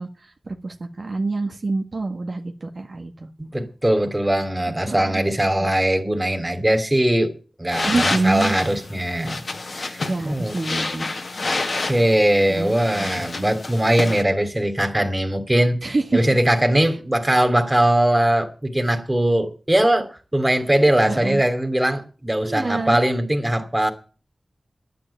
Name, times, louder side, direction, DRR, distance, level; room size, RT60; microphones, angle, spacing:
voice 1, 0.0-3.3 4.9-5.7 7.8-8.6 10.0-11.1 12.5-13.4 15.8-16.2 16.7-16.9 21.1-21.4 22.4-23.0, right 3 dB, 60° right, 1.7 m, -27 dB
voice 2, 3.5-7.3 7.6-9.4 9.7-10.5 11.8-23.9, right 1 dB, 15° right, 2.9 m, -20 dB
sound 1, 7.7-14.2, left 3 dB, 65° left, 2.0 m, -29 dB
11.5 x 9.6 x 8.7 m
cardioid pair, 50°, 0 cm